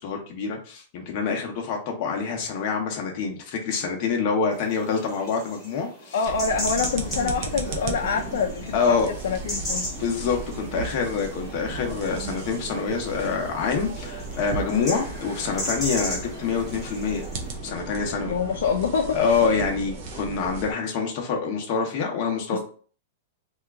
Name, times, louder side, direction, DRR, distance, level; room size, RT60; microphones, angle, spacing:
voice 1, 0.0-6.2 8.7-9.1 9.9-17.3 17.6-18.3 19.1-22.6, left 5 dB, 30° left, 0.7 m, -26 dB
sound 1, 4.5-17.5, left 1 dB, ahead, 1.0 m, -37 dB
voice 2, 6.1-9.0 9.2-9.9 18.2-19.4 22.5-22.6, left 5 dB, 70° left, 0.4 m, -26 dB
sound 2, 6.2-20.7, right 3 dB, 30° right, 0.5 m, -35 dB
2.8 x 2.3 x 3.4 m
supercardioid pair, 180°, 0 cm